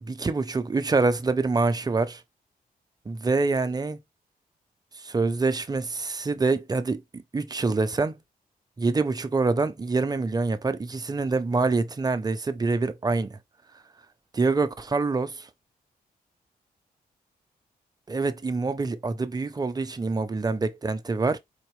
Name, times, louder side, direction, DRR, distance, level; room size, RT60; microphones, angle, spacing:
voice 1, 0.0-2.2 3.1-4.0 5.0-8.2 8.8-13.4 14.3-15.5 18.1-21.4, right 3 dB, 25° right, 0.6 m, -26 dB
4.4 x 2.6 x 3.1 m
cardioid pair, 85°, 16 cm